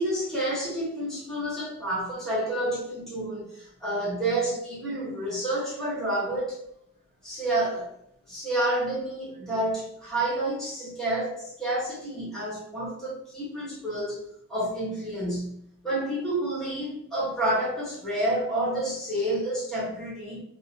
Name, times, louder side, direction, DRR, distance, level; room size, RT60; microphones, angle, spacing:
voice 1, 0.0-6.6 7.2-7.9 8.3-15.6 15.8-20.4, right 1 dB, ahead, -9 dB, 1.4 m, -29 dB
3.2 x 2.2 x 2.6 m, 0.71 s
head